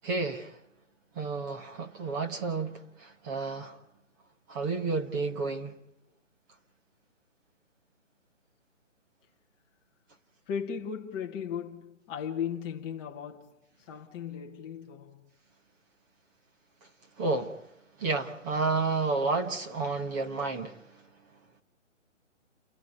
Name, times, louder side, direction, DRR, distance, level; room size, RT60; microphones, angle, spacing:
voice 1, 0.0-0.5 1.2-3.8 4.5-5.7 17.2-17.5 18.0-20.8, right 3 dB, 15° right, 1.2 m, -31 dB
voice 2, 10.5-13.6 13.9-15.3, left 8 dB, 10° left, 1.1 m, -36 dB
29.0 x 14.5 x 9.2 m
hypercardioid pair, 160°, 38 cm